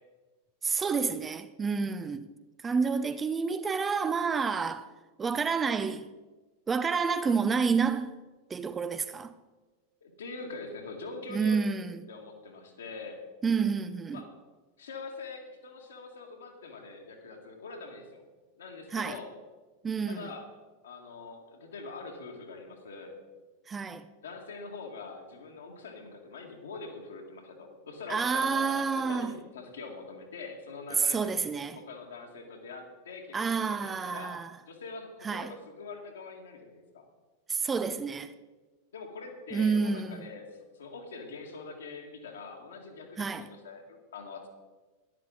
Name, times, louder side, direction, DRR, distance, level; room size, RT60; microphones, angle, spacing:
voice 1, 0.6-2.3 2.6-4.9 5.2-6.1 6.7-8.2 8.5-9.3 11.3-12.0 13.4-14.2 18.9-19.2 19.8-20.3 23.7-24.1 28.1-29.3 31.0-31.8 33.3-34.5 35.2-35.5 37.5-38.3 39.5-40.3 43.2-43.5, right 5 dB, 20° right, 0.5 m, -29 dB
voice 2, 10.0-11.7 12.1-13.2 14.1-14.3 14.8-18.2 18.6-19.3 20.1-20.5 20.8-23.2 24.2-31.4 31.8-34.4 34.7-37.1 38.9-40.5 40.7-44.5, left 4 dB, 65° left, 2.0 m, -43 dB
13.5 x 11.0 x 4.0 m
figure-of-eight pair, 90°, 0 cm